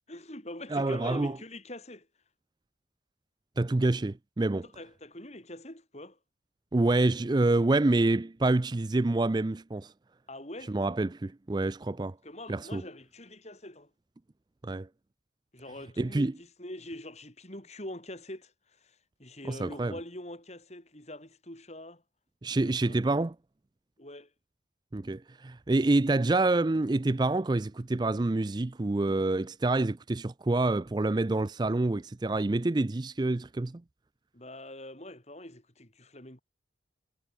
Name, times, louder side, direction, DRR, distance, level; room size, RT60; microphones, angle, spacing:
voice 1, 0.1-2.1 4.6-6.2 10.3-10.8 12.2-13.9 15.5-22.0 22.6-23.0 24.0-24.3 34.3-36.4, left 1 dB, 35° left, 5.3 m, -44 dB
voice 2, 0.7-1.4 3.6-4.7 6.7-9.9 10.7-12.2 12.5-12.8 14.6-14.9 16.0-16.3 19.5-19.9 22.4-23.3 24.9-33.8, right 2 dB, 20° right, 0.4 m, -27 dB
head